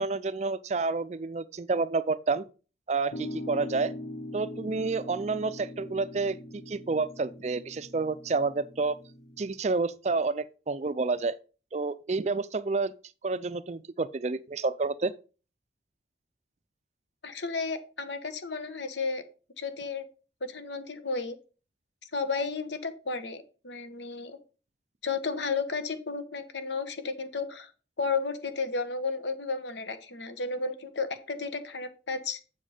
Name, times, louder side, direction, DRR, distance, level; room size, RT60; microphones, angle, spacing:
voice 1, 0.0-2.4 2.9-3.9 4.3-9.0 9.4-11.3 11.7-12.9 13.2-15.1, right 3 dB, 35° right, 0.4 m, -29 dB
sound 1, 3.1-9.5, left 1 dB, 55° left, 1.0 m, -42 dB
voice 2, 17.2-19.2 19.6-20.1 20.4-21.4 22.1-24.4 25.0-27.7 28.0-32.4, left 4 dB, 70° left, 1.3 m, -33 dB
7.6 x 7.3 x 5.0 m
head